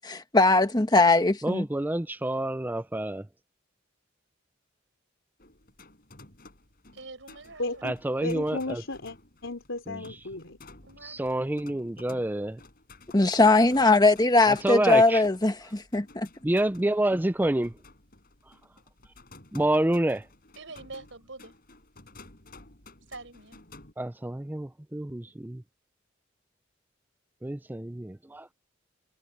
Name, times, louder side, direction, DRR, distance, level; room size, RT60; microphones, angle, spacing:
voice 1, 0.1-1.6 13.1-16.3, left 2 dB, 20° left, 1.4 m, -20 dB
voice 2, 1.4-3.3 7.8-8.8 9.9-10.2 11.0-12.6 14.5-15.2 16.4-17.8 19.5-20.3 24.0-25.6 27.4-28.5, right 1 dB, 10° right, 0.4 m, -28 dB
sound 1, 5.4-23.9, left 2 dB, 50° left, 5.1 m, -53 dB
voice 3, 6.9-7.9 10.8-11.5 20.6-21.6 23.1-23.6 25.2-25.3, right 3 dB, 75° right, 5.8 m, -45 dB
voice 4, 7.6-7.9 8.2-9.2 9.4-10.6, left 2 dB, 90° left, 3.8 m, -34 dB
head